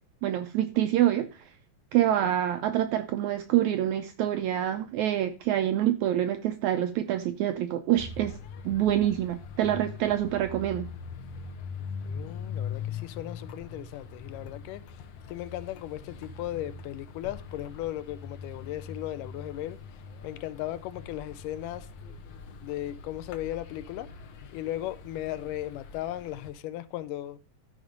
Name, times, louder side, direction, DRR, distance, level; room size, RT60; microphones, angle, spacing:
voice 1, 0.2-1.4 1.9-8.3 8.6-10.9, right 12 dB, 85° right, 1.7 m, -26 dB
sound 1, 8.0-26.5, left 6 dB, 65° left, 1.8 m, -42 dB
voice 2, 12.0-15.0 15.3-19.8 20.2-21.9 22.6-24.1 24.5-27.4, left 13 dB, 80° left, 2.1 m, -36 dB
13.0 x 5.1 x 5.1 m
omnidirectional pair, 3.9 m